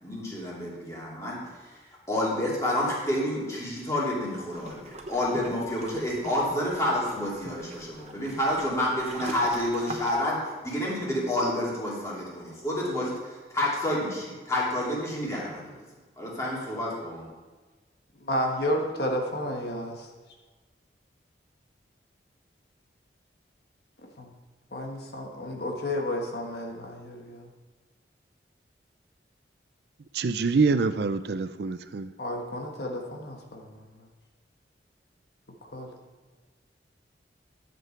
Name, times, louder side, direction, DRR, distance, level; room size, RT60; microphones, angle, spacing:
voice 1, 0.0-1.8 2.1-15.8 16.2-17.3, left 1 dB, 15° left, 2.7 m, -29 dB
sound 1, 4.5-10.3, right 2 dB, 35° right, 0.9 m, -43 dB
voice 2, 18.2-20.1 24.2-24.3 24.7-27.5 32.2-33.8 35.7-35.9, left 1 dB, 65° left, 1.4 m, -31 dB
voice 3, 30.1-32.1, right 4 dB, 65° right, 0.4 m, -25 dB
11.5 x 7.7 x 4.5 m
head